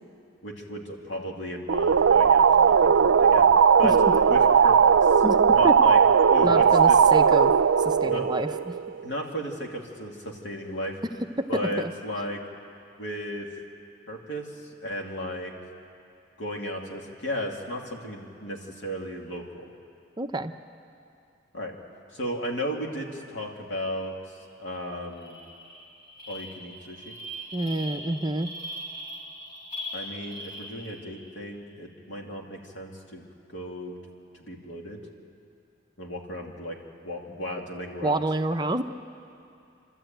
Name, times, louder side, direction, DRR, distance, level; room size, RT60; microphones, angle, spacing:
voice 1, 0.4-3.5 3.8-3.9 4.3-5.2 5.5-6.0 6.3-7.0 8.0-8.2 9.0-11.0 11.5-12.4 13.0-13.5 14.1-15.5 16.4-19.7 21.5-21.7 22.1-24.1 24.6-25.4 26.3-27.1 29.9-33.2 33.5-34.0 34.3-35.0 36.0-36.8 37.0-38.2, equal, 70° left, 0 dB, 2.6 m, -35 dB
sound 1, 1.7-9.1, right 6 dB, 85° right, 0.4 m, -18 dB
voice 2, 6.4-7.5 7.8-8.8 11.8-11.9 20.2-20.5 27.5-28.5 38.0-38.8, right 2 dB, 25° right, 7 dB, 0.6 m, -28 dB
sound 2, 24.4-24.6 24.9-31.3, equal, 50° left, 4.0 m, -40 dB
27.5 x 12.5 x 9.0 m, 2.6 s
head